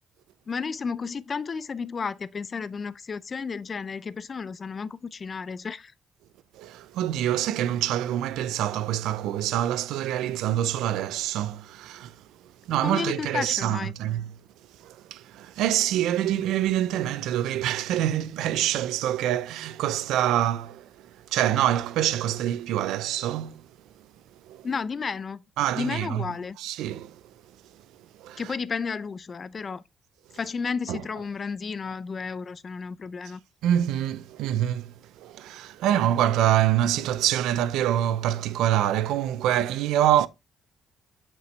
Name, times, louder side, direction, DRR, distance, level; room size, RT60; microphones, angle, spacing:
voice 1, 0.5-5.9 12.8-13.9 24.6-25.4 25.7-26.6 28.4-29.8 30.3-33.4, left 5 dB, 40° left, 0.5 m, -32 dB
voice 2, 6.5-12.2 12.7-14.3 14.8-23.7 24.5-24.7 25.6-26.3 26.6-27.2 28.2-28.4 30.9-31.0 33.6-40.3, right 11 dB, 90° right, 0.5 m, -26 dB
7.9 x 5.4 x 3.3 m
cardioid pair, 90°, 0 cm